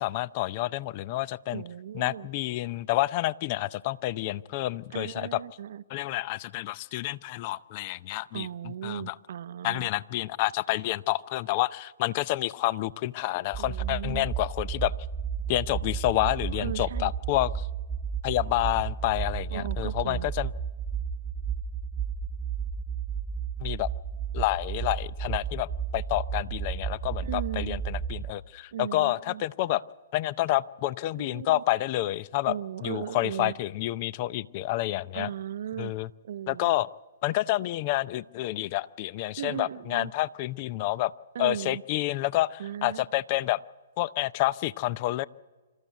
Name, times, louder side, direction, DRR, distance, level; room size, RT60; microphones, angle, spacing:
voice 1, 0.0-1.6 1.9-5.4 5.9-9.2 9.6-14.9 15.5-17.6 18.2-20.5 23.6-23.9 24.3-29.8 30.1-35.3 35.8-36.1 36.5-36.9 37.2-41.1 41.4-43.6 44.0-45.2, left 16 dB, 40° left, 20 dB, 0.5 m, -29 dB
voice 2, 1.5-2.3 4.9-5.8 8.3-9.9 13.6-14.3 16.2-17.1 19.5-20.3 27.2-27.8 28.7-29.4 31.1-31.6 32.5-33.5 35.1-35.9 36.2-36.7 39.4-40.1 41.3-41.8 42.6-43.0, right 10 dB, 60° right, 15 dB, 0.6 m, -37 dB
sound 1, 13.5-28.3, right 7 dB, 10° right, 1.1 m, -33 dB
26.0 x 14.0 x 8.1 m, 1.4 s
hypercardioid pair, 125°, 0 cm